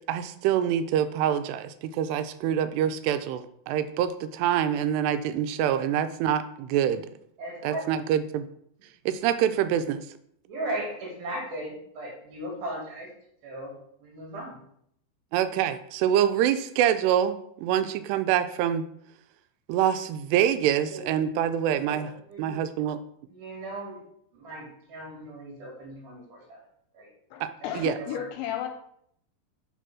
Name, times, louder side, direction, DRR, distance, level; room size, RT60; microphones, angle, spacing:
voice 1, 0.1-7.0 7.6-8.5 9.1-10.1 15.3-18.8 19.7-22.1 22.4-23.0 27.4-27.5 27.8-28.0, right 10 dB, 85° right, 11 dB, 2.6 m, -25 dB
voice 2, 7.4-7.9 10.5-13.1 13.4-13.7 14.0-14.6 20.9-21.1 21.9-22.6 23.3-24.0 24.3-26.6 26.9-27.1 27.6-28.2, right 1 dB, 65° right, -2 dB, 4.0 m, -37 dB
voice 3, 27.3-28.7, left 10 dB, 80° left, 5 dB, 2.3 m, -33 dB
6.8 x 4.2 x 6.0 m, 0.70 s
omnidirectional pair, 4.8 m